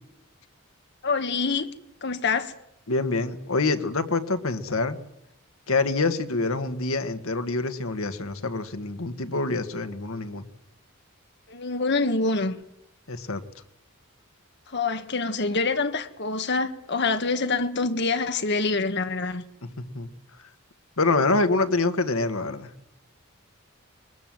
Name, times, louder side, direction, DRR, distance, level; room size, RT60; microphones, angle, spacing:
voice 1, 1.0-1.7 2.0-2.5 11.5-12.6 14.7-19.4, left 3 dB, 50° left, 1.5 m, -26 dB
voice 2, 2.9-5.0 5.7-10.5 13.1-13.4 19.9-20.1 21.0-22.7, left 3 dB, 75° left, 1.6 m, -26 dB
21.5 x 20.5 x 7.7 m
head